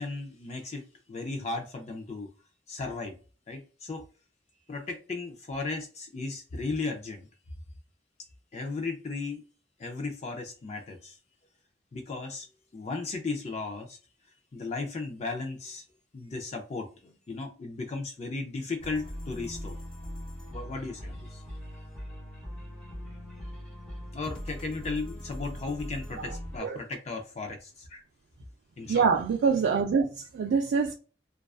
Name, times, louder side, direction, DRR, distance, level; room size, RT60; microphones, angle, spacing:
voice 1, 0.0-2.3 2.7-3.2 3.5-4.1 4.7-7.3 8.5-9.5 9.8-11.2 11.9-12.5 12.7-14.0 14.5-15.8 16.1-19.8 20.5-21.4 24.1-28.0 28.8-29.1, left 3 dB, 35° left, 0.4 m, -36 dB
sound 1, 18.8-26.6, equal, 5° left, 0.8 m, -41 dB
voice 2, 28.9-30.9, right 5 dB, 80° right, 0.3 m, -25 dB
2.3 x 2.2 x 2.3 m
head